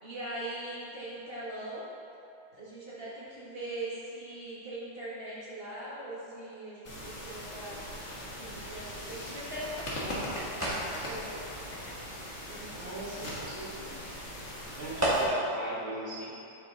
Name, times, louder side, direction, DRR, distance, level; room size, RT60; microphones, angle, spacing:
voice 1, 0.0-1.8 2.5-7.8 8.1-11.5 12.5-13.1 13.4-13.5, right 1 dB, 35° right, -8 dB, 1.3 m, -41 dB
sound 1, 6.8-15.2, equal, 40° left, 1.4 m, -40 dB
sound 2, 9.2-15.6, right 1 dB, 10° right, 1.0 m, -36 dB
voice 2, 12.7-14.2 14.7-16.3, right 1 dB, 80° right, -7 dB, 2.3 m, -40 dB
7.4 x 5.2 x 3.7 m, 2.6 s
omnidirectional pair, 2.1 m